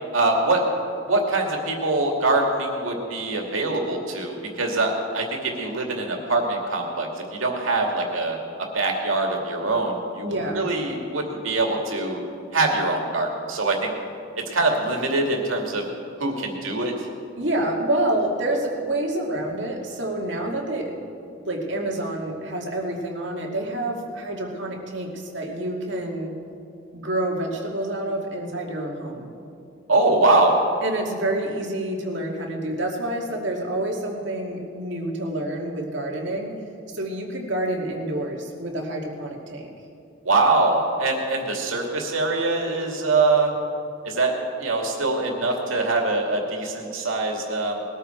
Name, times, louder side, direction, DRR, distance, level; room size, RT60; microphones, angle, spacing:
voice 1, 0.1-0.7 1.1-7.1 7.4-8.4 8.7-10.3 10.6-12.2 12.5-13.9 14.5-15.9 16.2-16.9 29.9-30.6 40.2-43.5 44.0-44.3 44.6-47.8, right 2 dB, 90° right, 1 dB, 2.4 m, -23 dB
voice 2, 10.2-10.7 17.4-20.9 21.4-26.3 26.9-29.3 30.8-36.6 36.9-39.7, right 1 dB, 65° right, 0 dB, 2.2 m, -28 dB
20.5 x 13.0 x 4.5 m, 2.5 s
head